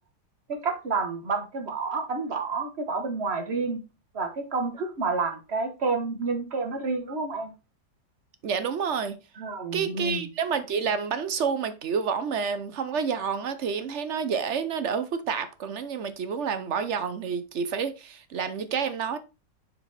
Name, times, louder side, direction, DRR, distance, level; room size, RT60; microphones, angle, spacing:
voice 1, 0.5-3.8 4.1-7.5 9.4-10.3, right 4 dB, 40° right, 1.5 m, -29 dB
voice 2, 8.4-9.2 9.7-19.2, right 6 dB, 55° right, 0.8 m, -29 dB
7.9 x 4.6 x 4.1 m
omnidirectional pair, 1.9 m